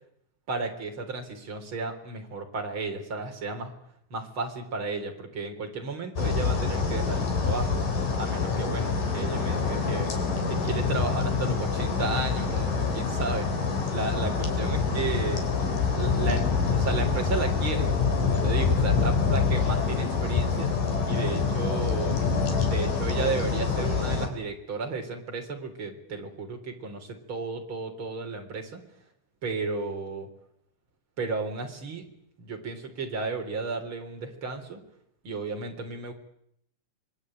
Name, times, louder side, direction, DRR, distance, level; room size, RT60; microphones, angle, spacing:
voice 1, 0.5-3.7 4.1-7.8 8.2-10.1 10.5-13.5 13.9-15.4 15.9-17.9 18.2-20.7 21.0-22.2 22.6-28.8 29.4-30.3 31.2-32.0 32.4-34.8 35.2-36.1, right 4 dB, 40° right, 4 dB, 4.2 m, -33 dB
sound 1, 6.2-24.3, left 5 dB, 80° left, 5.2 m, -26 dB
26.0 x 22.0 x 8.9 m, 0.73 s
omnidirectional pair, 3.7 m